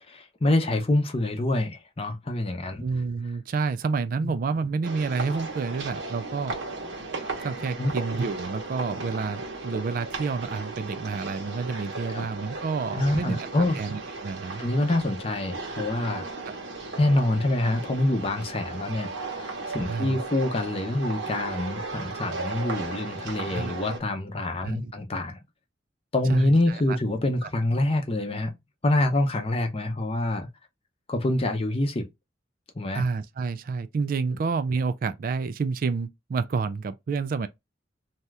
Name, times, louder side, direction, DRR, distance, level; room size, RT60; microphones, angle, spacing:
voice 1, 0.0-2.8 4.2-4.3 7.8-7.9 12.1-12.3 12.9-13.8 14.6-16.3 17.0-25.4 26.1-28.5 28.8-30.5 31.1-32.1 32.8-33.0, left 1 dB, 30° left, 0.6 m, -26 dB
voice 2, 2.8-6.6 7.4-13.5 13.8-14.6 16.5-16.6 19.8-20.2 23.5-23.8 24.6-24.9 26.3-27.0 27.4-27.5 32.9-37.5, right 4 dB, 50° right, 0.3 m, -29 dB
sound 1, 4.8-24.0, right 3 dB, 90° right, 1.1 m, -36 dB
2.7 x 2.4 x 3.2 m
head